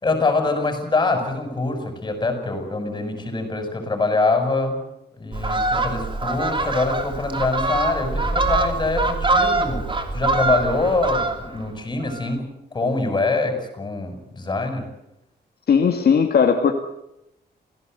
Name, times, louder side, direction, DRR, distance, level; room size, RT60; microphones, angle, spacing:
voice 1, 0.0-4.8 5.2-12.5 12.7-14.9, left 3 dB, 25° left, 6 dB, 6.9 m, -24 dB
Fowl, 5.3-11.7 12.0-12.3, right 2 dB, 30° right, 2.9 m, -23 dB
voice 2, 15.7-16.7, left 6 dB, 60° left, 4 dB, 2.1 m, -17 dB
28.5 x 17.0 x 8.1 m, 0.86 s
wide cardioid pair, 155°, 18 cm